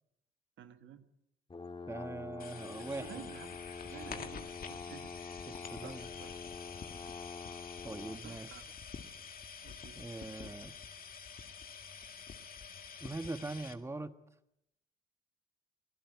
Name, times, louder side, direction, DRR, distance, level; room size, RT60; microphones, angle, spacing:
voice 1, 0.6-1.1 2.8-5.4 5.8-6.3 8.2-8.7 9.6-10.0, right 9 dB, 75° right, 9 dB, 1.8 m, -52 dB
sound 1, 1.5-8.3, left 5 dB, 25° left, 1.8 m, -46 dB
voice 2, 1.9-3.2 3.8-4.2 5.5-6.1 7.8-8.5 9.9-10.7 13.0-14.1, right 2 dB, 15° right, 10 dB, 1.4 m, -42 dB
sound 2, 2.4-13.7, left 6 dB, 45° left, 2.2 m, -48 dB
25.0 x 18.0 x 9.6 m, 0.83 s
cardioid pair, 90°, 20 cm